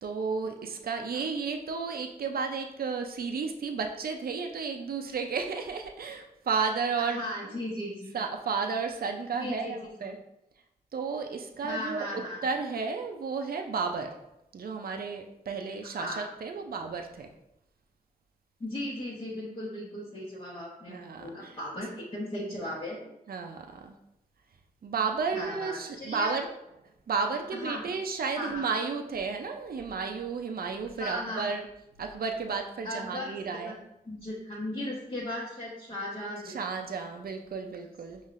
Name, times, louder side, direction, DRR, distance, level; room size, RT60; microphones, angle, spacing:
voice 1, 0.0-7.3 8.1-10.2 10.9-14.2 14.5-17.3 20.9-21.6 23.3-23.9 24.8-26.5 27.1-31.7 32.0-33.8 36.5-38.2, right 5 dB, 75° right, 4 dB, 0.5 m, -33 dB
voice 2, 7.0-8.1 9.4-10.1 11.6-12.4 15.8-16.3 18.6-23.1 25.3-26.3 27.5-27.8 28.4-28.7 31.0-31.5 32.8-33.3 33.6-33.8 34.1-36.6, left 1 dB, 40° left, -7 dB, 0.9 m, -37 dB
5.5 x 3.1 x 2.5 m, 0.84 s
cardioid pair, 60°, 16 cm